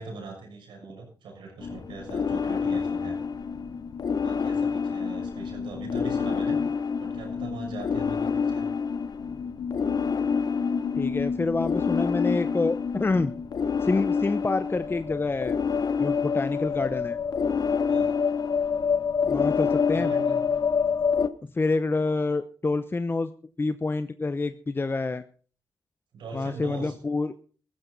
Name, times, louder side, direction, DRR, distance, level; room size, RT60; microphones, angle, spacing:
voice 1, 0.0-3.2 4.2-6.6 7.0-8.7 17.9-18.2 19.9-20.4 26.1-26.9, right 4 dB, 85° right, 1 dB, 6.5 m, -41 dB
sound 1, 1.6-21.3, left 6 dB, 55° left, 0.8 m, -27 dB
voice 2, 11.0-13.3 13.8-15.6 16.0-17.2 19.2-20.1 21.5-23.3 23.6-25.2 26.3-27.3, left 3 dB, 30° left, 11 dB, 0.8 m, -27 dB
15.0 x 14.5 x 4.0 m, 0.40 s
cardioid pair, 65°, 8 cm